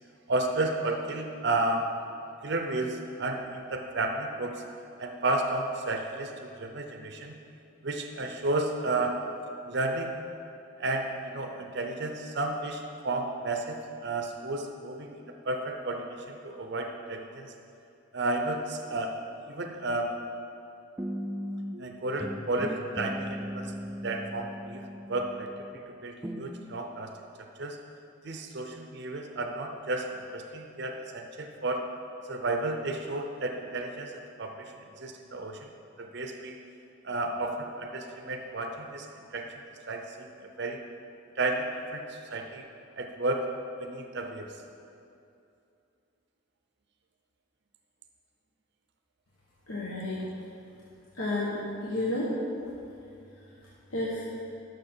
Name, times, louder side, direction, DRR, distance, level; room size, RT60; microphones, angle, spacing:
voice 1, 0.3-1.9 2.4-4.6 5.0-7.4 7.8-9.1 9.7-10.1 10.8-13.8 14.0-17.5 18.1-19.1 19.5-20.1 21.8-23.7 24.0-24.8 25.1-27.1 27.6-27.8 28.2-31.8 32.3-35.7 36.0-36.6 37.0-39.1 39.3-39.5 39.9-40.8 41.4-41.6 41.9-42.7 43.0-43.4 43.8-44.5, right 2 dB, 55° right, 4 dB, 0.6 m, -32 dB
sound 1, 21.0-21.9 22.2-25.8 26.2-26.5, equal, 10° right, 0.4 m, -37 dB
voice 2, 49.7-50.3 51.1-52.3 53.9-54.2, left 1 dB, 85° left, -6 dB, 1.2 m, -31 dB
11.5 x 6.2 x 4.4 m, 2.7 s
head